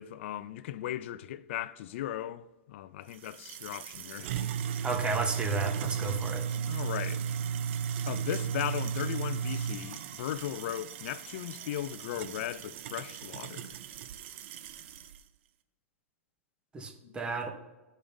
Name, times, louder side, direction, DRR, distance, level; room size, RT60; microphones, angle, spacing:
voice 1, 0.0-4.7 6.7-7.3 8.1-13.8 17.0-17.2, left 12 dB, 60° left, 0.4 m, -37 dB
sound 1, 3.1-15.2, right 7 dB, 55° right, 0.5 m, -35 dB
voice 2, 4.8-6.4 16.7-17.5, right 3 dB, 15° right, 0.9 m, -32 dB
12.5 x 5.1 x 2.6 m
hypercardioid pair, 135°, 7 cm